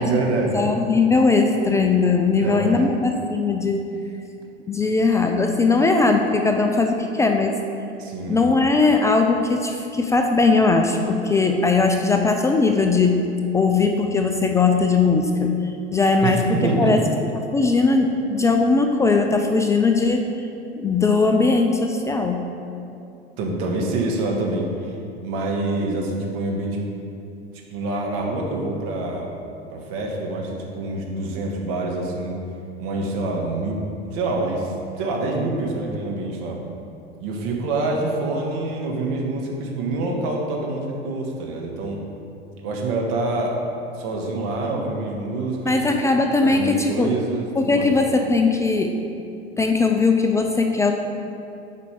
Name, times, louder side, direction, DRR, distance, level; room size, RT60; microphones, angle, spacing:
voice 1, 0.0-0.6 2.3-2.9 8.0-8.4 16.2-16.9 23.4-24.9 25.2-26.8 27.7-29.3 29.7-32.4 32.8-33.8 34.1-36.6 37.2-42.0 42.6-43.6 43.9-45.9 46.4-47.9, right 2 dB, 45° right, 0 dB, 1.5 m, -26 dB
voice 2, 0.5-3.9 4.7-7.6 8.3-13.2 13.5-15.6 15.9-16.4 16.8-17.0 17.5-20.2 20.8-22.4 45.6-47.1 47.6-48.9 49.6-50.9, left 3 dB, 10° left, 3 dB, 0.3 m, -19 dB
8.2 x 4.9 x 5.2 m, 2.6 s
figure-of-eight pair, 90°, 32 cm